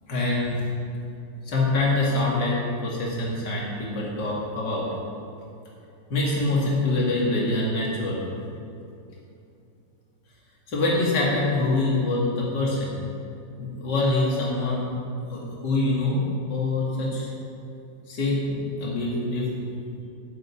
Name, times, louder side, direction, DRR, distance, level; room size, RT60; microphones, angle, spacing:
voice 1, 0.1-0.6 1.4-4.9 6.1-8.2 10.7-13.0 13.6-14.8 15.3-16.2 16.5-17.3 18.1-19.7, left 2 dB, 65° left, -5 dB, 2.9 m, -25 dB
9.3 x 8.2 x 8.5 m, 2.6 s
omnidirectional pair, 2.0 m